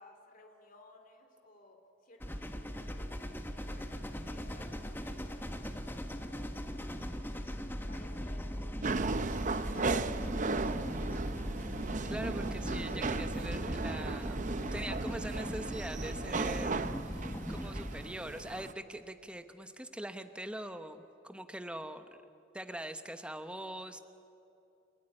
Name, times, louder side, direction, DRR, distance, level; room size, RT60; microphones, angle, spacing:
voice 1, 0.0-3.9 4.2-7.4 7.9-11.2, left 2 dB, 45° left, 4 dB, 2.6 m, -57 dB
sound 1, 2.2-18.1, equal, 10° left, 1.2 m, -40 dB
sound 2, 8.8-18.7, right 3 dB, 40° right, 0.6 m, -36 dB
voice 2, 12.1-14.4 14.7-22.1 22.5-24.0, right 1 dB, 5° right, 8 dB, 0.9 m, -43 dB
29.0 x 16.0 x 9.9 m, 2.8 s
head